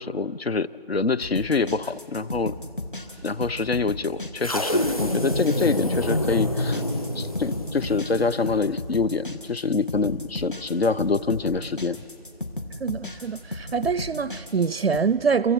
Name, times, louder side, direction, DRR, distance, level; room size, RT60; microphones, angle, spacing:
voice 1, 0.0-2.5 3.2-6.8 7.1-12.0, left 4 dB, 70° left, 0.7 m, -25 dB
sound 1, 1.2-15.0, left 2 dB, 55° left, 2.1 m, -35 dB
sound 2, 4.4-8.7, left 1 dB, 35° left, 1.5 m, -27 dB
voice 2, 12.8-15.5, right 5 dB, 85° right, 0.5 m, -24 dB
29.0 x 23.5 x 4.6 m
figure-of-eight pair, 175°, 31 cm